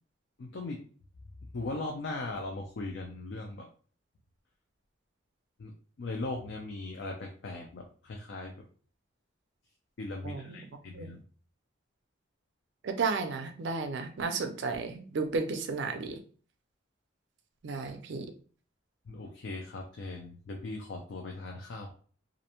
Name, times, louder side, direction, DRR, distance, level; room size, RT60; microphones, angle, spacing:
voice 1, 0.4-0.8 1.5-3.7 5.6-5.7 6.0-8.6 10.0-11.2 19.1-21.9, left 2 dB, 60° left, 1 dB, 0.4 m, -39 dB
voice 2, 10.2-11.1 12.8-16.2 17.6-18.3, right 4 dB, 60° right, 6 dB, 0.4 m, -33 dB
2.5 x 2.1 x 2.8 m, 0.42 s
head